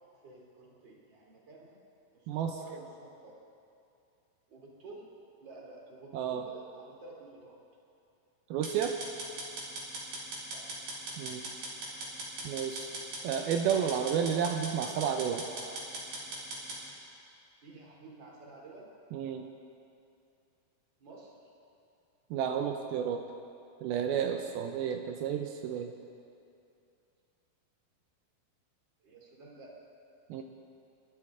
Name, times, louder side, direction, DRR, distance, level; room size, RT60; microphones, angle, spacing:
voice 1, 0.1-1.8 2.1-3.4 4.5-5.1 5.4-7.6 10.4-10.7 17.6-18.9 21.0-21.3 29.0-29.7 30.3-30.4, right 3 dB, 30° right, -2 dB, 3.0 m, -51 dB
voice 2, 6.1-6.4 8.5-9.0 11.2-11.4 12.4-12.9 13.2-15.4 19.1-19.5 22.3-23.2 23.8-25.9 30.3-30.4, right 8 dB, 80° right, 4 dB, 2.6 m, -31 dB
sound 1, 8.6-16.8, right 2 dB, 60° right, 4.9 m, -40 dB
29.5 x 12.5 x 3.7 m, 2.6 s
omnidirectional pair, 4.4 m